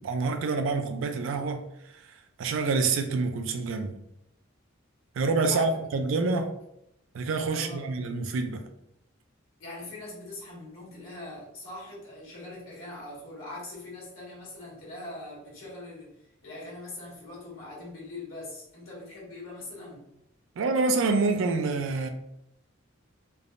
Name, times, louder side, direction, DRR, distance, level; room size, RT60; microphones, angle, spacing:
voice 1, 0.0-1.6 2.4-4.0 5.2-6.5 7.1-8.6 20.6-22.1, right 3 dB, 65° right, 0.4 m, -27 dB
voice 2, 7.5-7.9 9.6-20.1, left 2 dB, 80° left, 1.2 m, -42 dB
3.3 x 2.0 x 2.4 m
head